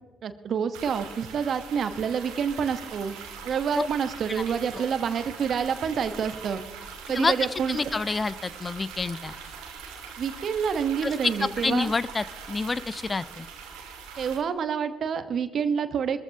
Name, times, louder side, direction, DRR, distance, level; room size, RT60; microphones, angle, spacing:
voice 1, 0.2-3.2 3.4-6.6 7.1-7.8 10.2-11.9 14.2-16.2, right 7 dB, 55° right, 10 dB, 1.1 m, -28 dB
sound 1, 0.7-14.4, right 6 dB, 75° right, 1.8 m, -42 dB
voice 2, 7.7-9.3 11.0-13.5, left 3 dB, 30° left, 17 dB, 0.6 m, -28 dB
22.5 x 14.5 x 2.8 m, 1.3 s
hypercardioid pair, 45°, 0 cm